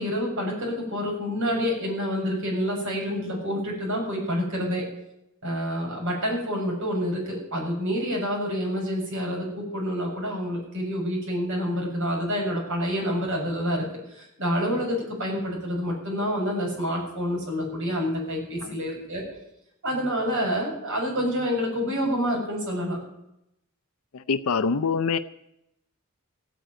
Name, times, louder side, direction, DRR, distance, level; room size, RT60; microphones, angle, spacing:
voice 1, 0.0-4.8 5.4-13.9 14.1-19.2 19.8-23.0, equal, 60° right, -2 dB, 6.9 m, -28 dB
voice 2, 24.1-25.2, left 5 dB, 90° left, 10 dB, 0.6 m, -24 dB
15.5 x 9.3 x 9.1 m, 0.84 s
head